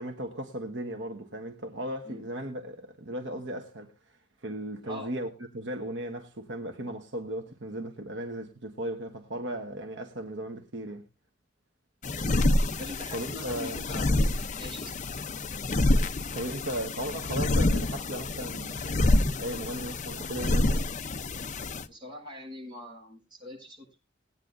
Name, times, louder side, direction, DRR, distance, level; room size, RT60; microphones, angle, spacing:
voice 1, 0.0-11.0 13.1-13.8 16.3-19.0 19.3-20.9, right 1 dB, 70° right, 1.2 m, -36 dB
sound 1, 12.0-21.8, left 2 dB, 40° left, 0.7 m, -27 dB
voice 2, 12.8-14.0 14.6-14.9 21.9-24.0, left 1 dB, 25° right, 6.8 m, -43 dB
20.0 x 9.2 x 2.6 m
head